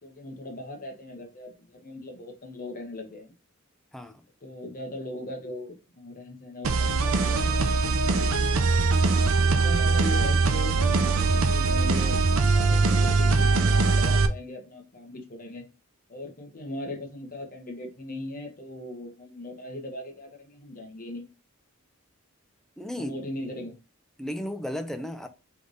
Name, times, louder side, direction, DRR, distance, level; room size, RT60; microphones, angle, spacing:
voice 1, 0.0-3.3 4.4-8.6 9.5-12.2 12.5-15.6 16.1-21.3 23.0-23.7, left 1 dB, 45° left, 1.2 m, -39 dB
sound 1, 6.6-14.3, right 3 dB, 85° right, 0.6 m, -22 dB
voice 2, 22.8-23.2 24.2-25.3, equal, ahead, 0.5 m, -34 dB
3.4 x 3.3 x 4.0 m
head